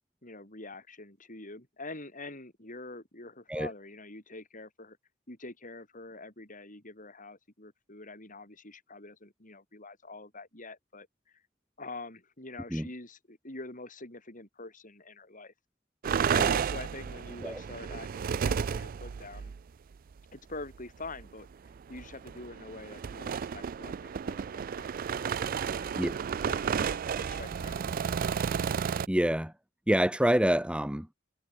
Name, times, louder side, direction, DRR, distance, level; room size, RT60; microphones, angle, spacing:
voice 1, 0.2-5.0 5.3-11.4 11.8-15.5 16.3-19.5 20.3-21.5 21.9-25.9 26.4-28.2, left 2 dB, 40° left, 7.2 m, -45 dB
sound 1, 16.0-19.6 20.5-20.7 21.0-21.3 21.7-29.1, right 7 dB, 45° right, 0.4 m, -32 dB
voice 2, 29.1-29.5 29.9-31.1, right 1 dB, 5° right, 1.0 m, -26 dB
head